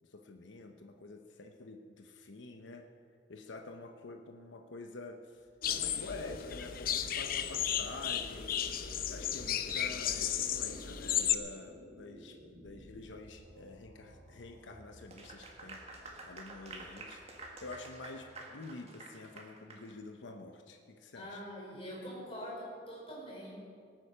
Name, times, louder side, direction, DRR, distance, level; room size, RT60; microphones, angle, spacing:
voice 1, 0.0-2.8 3.3-5.5 5.8-8.6 9.1-12.4 12.6-21.4, left 3 dB, 85° left, 4 dB, 0.8 m, -48 dB
sound 1, 5.4-18.6, equal, 60° right, 1.9 m, -57 dB
sound 2, 5.6-11.4, left 9 dB, 50° left, 0.7 m, -34 dB
Clapping / Applause, 15.0-19.9, right 2 dB, 35° right, 1.7 m, -49 dB
voice 2, 21.1-23.5, equal, 30° left, -4 dB, 4.5 m, -44 dB
19.0 x 9.1 x 5.6 m, 2.2 s
head